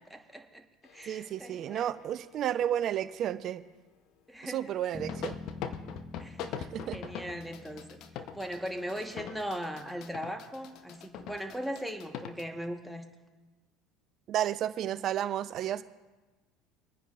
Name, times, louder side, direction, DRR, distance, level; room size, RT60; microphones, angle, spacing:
voice 1, 0.1-1.9 4.3-4.8 6.2-6.4 6.9-13.1, equal, ahead, 4 dB, 1.2 m, -39 dB
sound 1, 0.8-2.8 5.1-12.4, left 8 dB, 60° left, 0.8 m, -43 dB
voice 2, 1.1-3.6 4.4-5.4 6.5-7.0 14.3-15.8, right 11 dB, 50° right, 13 dB, 0.6 m, -32 dB
Bass guitar, 4.9-9.4, left 3 dB, 20° left, 0.7 m, -46 dB
23.5 x 9.9 x 2.4 m, 1.2 s
hypercardioid pair, 75°, 0 cm